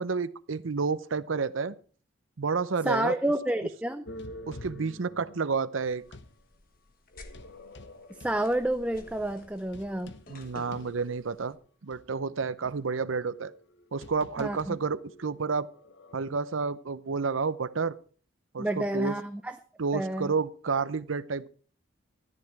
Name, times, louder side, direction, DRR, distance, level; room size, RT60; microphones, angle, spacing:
voice 1, 0.0-1.7 2.4-3.1 4.5-6.0 10.3-11.6 11.8-13.5 13.9-15.7 16.1-18.0 18.5-19.1 19.8-21.5, right 5 dB, 80° right, 17 dB, 0.7 m, -30 dB
voice 2, 2.8-4.0 8.2-10.1 14.4-14.8 18.6-19.6 19.9-20.3, right 1 dB, 5° right, 8 dB, 0.5 m, -29 dB
sound 1, 4.1-6.4 7.1-11.5 11.9-12.0 12.6-16.2, left 1 dB, 60° left, 1.0 m, -48 dB
sound 2, 5.8-11.5, left 2 dB, 45° left, 1.5 m, -53 dB
13.5 x 11.0 x 4.7 m, 0.41 s
head